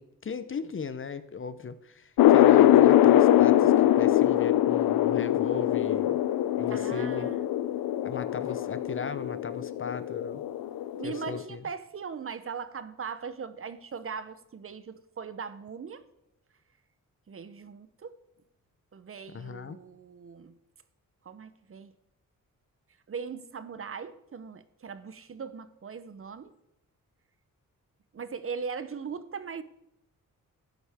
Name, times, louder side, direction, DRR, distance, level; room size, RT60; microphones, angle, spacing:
voice 1, 0.0-6.2 6.6-7.3 8.0-10.4 11.0-11.6 19.3-19.8, left 5 dB, 35° left, 13 dB, 0.7 m, -37 dB
sound 1, 2.2-11.4, left 12 dB, 90° left, 0.5 m, -22 dB
voice 2, 6.7-7.4 11.0-16.0 17.3-18.2 18.9-20.6 21.2-21.9 23.1-26.5 28.1-29.6, right 6 dB, 40° right, 13 dB, 0.7 m, -39 dB
12.0 x 9.9 x 3.5 m, 0.82 s
cardioid pair, 100°, 34 cm